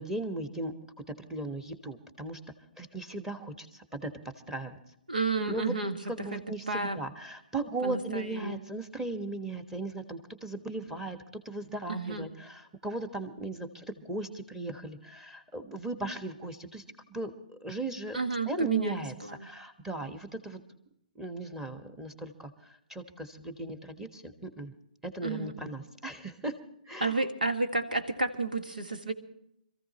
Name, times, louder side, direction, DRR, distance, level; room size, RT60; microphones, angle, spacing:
voice 1, 0.0-2.4 2.8-4.1 4.5-4.8 5.5-5.7 6.1-11.2 11.4-16.8 17.1-18.2 18.5-19.1 19.4-20.6 21.1-24.7 25.0-26.5 26.9-27.2, right 2 dB, 5° right, 7 dB, 1.3 m, -37 dB
voice 2, 5.1-6.0 6.3-6.4 6.7-7.0 7.8-8.6 11.9-12.3 18.1-19.5 25.2-25.5 27.0-29.1, right 3 dB, 80° right, 7 dB, 1.8 m, -31 dB
26.5 x 15.0 x 2.9 m, 0.75 s
figure-of-eight pair, 130°, 5 cm